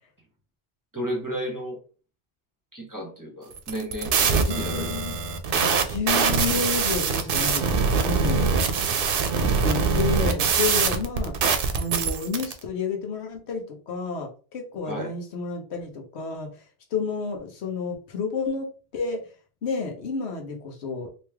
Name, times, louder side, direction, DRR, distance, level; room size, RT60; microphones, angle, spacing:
voice 1, 0.9-1.8 2.7-5.1 14.8-15.1, equal, 20° right, -1 dB, 1.1 m, -34 dB
sound 1, 3.6-12.5, right 5 dB, 65° right, 0.8 m, -23 dB
voice 2, 4.5-5.2 5.8-8.6 9.3-11.3 11.7-16.6 16.9-18.7 18.9-19.2 19.6-21.1, left 4 dB, 85° left, 3 dB, 1.1 m, -30 dB
3.1 x 2.9 x 3.4 m, 0.37 s
omnidirectional pair, 1.1 m